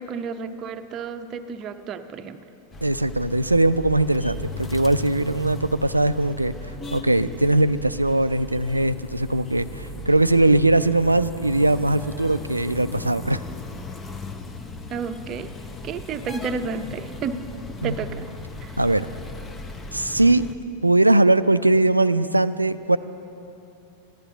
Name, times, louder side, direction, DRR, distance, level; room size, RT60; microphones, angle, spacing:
voice 1, 0.0-2.4 14.9-15.5 15.8-17.4 17.8-18.3 18.6-18.8, right 5 dB, 30° right, 7 dB, 0.7 m, -31 dB
sound 1, 2.7-20.5, left 3 dB, 20° left, 0.8 m, -37 dB
voice 2, 2.8-13.4 17.8-17.9 18.8-19.1 19.9-20.4 20.8-23.0, right 2 dB, 85° right, 13 dB, 0.4 m, -20 dB
14.5 x 11.5 x 6.8 m, 2.8 s
figure-of-eight pair, 90°, 0 cm